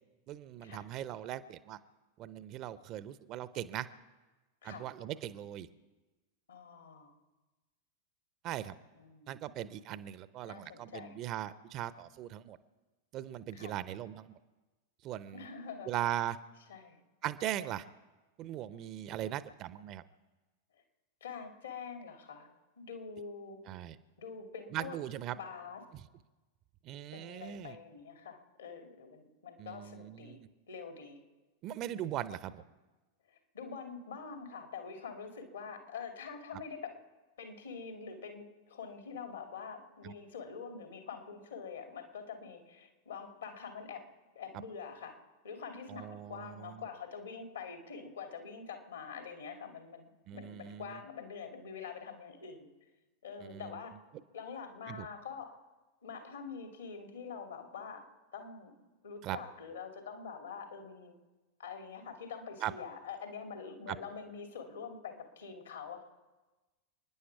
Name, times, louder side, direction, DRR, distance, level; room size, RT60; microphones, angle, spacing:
voice 1, 0.3-1.8 2.2-3.9 4.6-5.7 8.4-8.7 9.3-12.6 13.1-14.3 15.0-15.5 15.9-16.4 17.2-17.8 18.4-20.0 23.7-24.0 24.7-25.4 25.9-26.0 26.8-27.8 29.6-30.4 31.6-32.6 40.0-40.1 45.9-46.9 50.3-51.0 53.4-53.7 54.9-55.1 59.2-59.4 62.6-62.7 63.9-64.0, right 12 dB, 35° right, 16 dB, 0.7 m, -39 dB
voice 2, 6.5-7.1 9.0-9.4 10.5-11.1 13.5-13.8 15.3-16.0 16.7-17.0 21.2-22.5 22.8-23.6 24.2-25.0 25.3-25.8 27.1-31.2 33.3-36.9 37.4-44.0 44.3-45.1 45.4-52.7 53.2-53.9 54.3-55.5 56.0-58.0 58.3-58.7 59.0-61.1 61.6-66.0, left 6 dB, 70° left, 4 dB, 2.5 m, -45 dB
29.5 x 10.0 x 4.7 m, 1.2 s
figure-of-eight pair, 90°, 0 cm